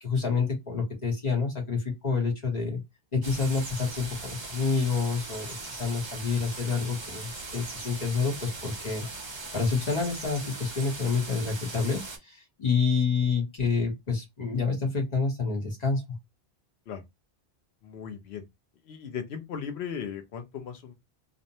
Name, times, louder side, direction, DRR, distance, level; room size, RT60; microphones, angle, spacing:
voice 1, 0.0-2.8 3.1-9.1 9.5-16.0, left 5 dB, 40° left, 0.9 m, -28 dB
sound 1, 3.2-12.2, right 3 dB, 35° right, 0.5 m, -39 dB
voice 2, 17.8-18.5 18.8-20.9, left 7 dB, 75° left, 0.9 m, -37 dB
2.6 x 2.1 x 2.7 m
omnidirectional pair, 1.1 m